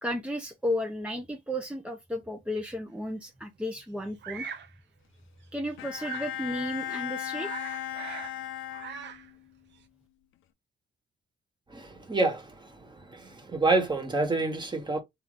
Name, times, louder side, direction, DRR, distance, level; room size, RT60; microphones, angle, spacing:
voice 1, 0.0-4.5 5.5-7.5, left 1 dB, 5° right, 0.7 m, -33 dB
Bird vocalization bird call bird song, 4.2-4.7 6.0-6.4 6.9-7.0 7.2-8.4 8.6-9.3, right 7 dB, 65° right, 0.9 m, -41 dB
Bowed string instrument, 5.8-9.4, left 12 dB, 85° left, 0.8 m, -37 dB
voice 2, 11.7-15.0, right 3 dB, 20° right, 1.4 m, -28 dB
3.8 x 3.0 x 3.8 m
cardioid pair, 90°, 20 cm